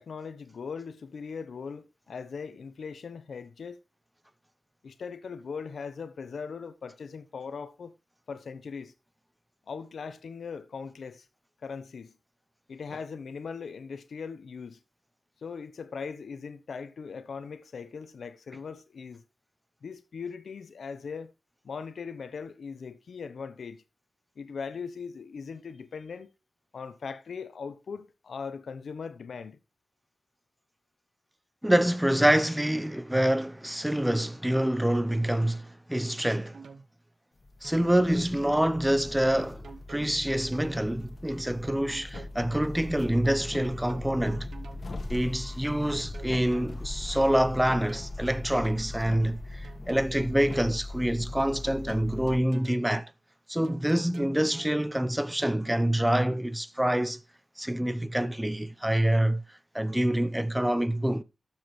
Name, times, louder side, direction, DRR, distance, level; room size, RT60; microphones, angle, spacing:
voice 1, 0.0-3.8 4.8-7.9 8.3-8.9 9.7-11.2 11.6-12.1 12.7-14.8 15.4-19.2 19.8-21.3 21.6-23.8 24.4-26.3 26.7-29.6, left 5 dB, 85° left, 1.0 m, -39 dB
voice 2, 31.6-36.6 37.6-39.6 39.9-44.5 45.1-53.1 53.5-57.2 57.6-59.4 59.7-61.2, right 1 dB, 10° right, 0.9 m, -26 dB
sound 1, 36.5-36.9 37.6-38.7 39.4-40.8 41.6-42.7 43.4-44.9 45.6-46.7 47.4-48.9 49.6-50.7 51.4-52.9 53.6-54.7 55.4-55.5, right 5 dB, 85° right, 1.0 m, -47 dB
sound 2, 37.4-52.4, left 2 dB, 60° left, 1.9 m, -39 dB
12.0 x 7.3 x 3.2 m
cardioid pair, 50°, 0 cm